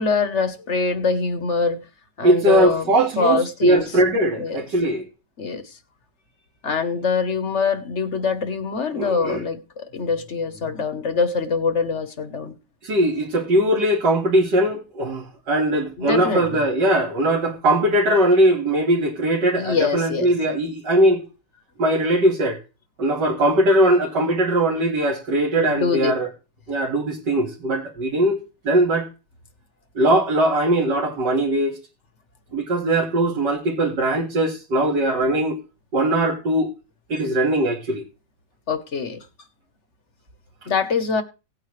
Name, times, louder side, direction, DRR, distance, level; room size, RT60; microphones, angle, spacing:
voice 1, 0.0-1.8 2.2-2.9 3.2-3.9 4.4-4.6 5.4-5.7 6.6-12.5 16.0-16.6 19.6-20.3 25.6-26.1 38.7-39.2 40.7-41.2, left 4 dB, 45° left, 1.3 m, -24 dB
voice 2, 2.2-5.1 8.9-9.4 12.8-21.2 21.8-22.6 23.0-26.3 26.7-28.4 28.6-29.1 30.0-31.8 32.5-35.6 35.9-36.7 37.1-38.1, right 1 dB, 65° right, 2.6 m, -20 dB
17.5 x 9.1 x 3.2 m
omnidirectional pair, 2.0 m